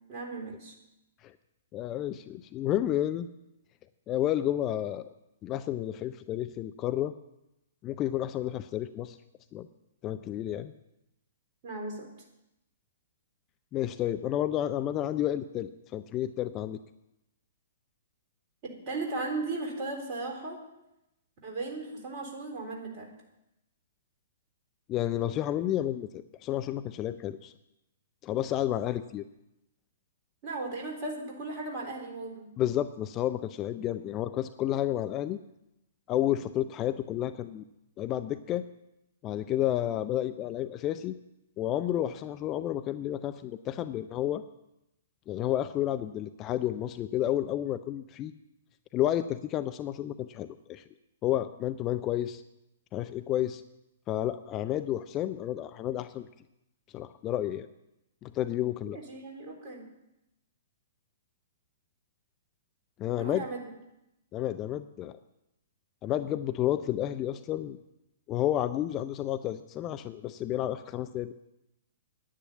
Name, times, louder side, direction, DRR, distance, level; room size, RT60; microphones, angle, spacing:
voice 1, 0.1-0.7 11.6-12.1 18.6-20.6 21.4-23.1 30.4-32.5 58.9-59.9 63.1-63.6, right 3 dB, 35° right, 0 dB, 3.9 m, -36 dB
voice 2, 1.7-3.3 4.1-5.1 5.4-7.1 7.8-9.2 9.5-9.7 10.0-10.7 13.7-16.8 24.9-27.5 28.2-29.2 32.6-35.4 36.1-37.6 38.0-38.6 39.2-41.1 41.6-44.4 45.3-48.3 48.9-50.8 51.2-52.4 52.9-53.6 54.1-56.3 56.9-57.7 58.2-59.0 63.0-63.4 64.3-65.2 66.0-67.8 68.3-71.3, left 12 dB, 25° left, 11 dB, 0.5 m, -31 dB
10.0 x 9.9 x 8.4 m, 0.88 s
figure-of-eight pair, 115°, 0 cm